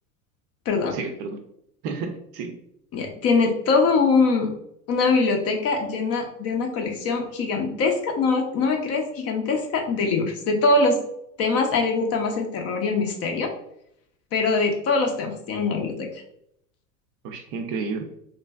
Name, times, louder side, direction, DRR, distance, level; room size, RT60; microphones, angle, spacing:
voice 1, 0.9-1.4 1.8-2.5 17.2-18.0, right 4 dB, 45° right, 6 dB, 0.5 m, -31 dB
voice 2, 2.9-4.5 4.9-11.0 11.4-13.5 14.3-16.1, left 3 dB, 35° left, 3 dB, 0.5 m, -23 dB
3.1 x 2.5 x 2.2 m, 0.74 s
hypercardioid pair, 90°, 45 cm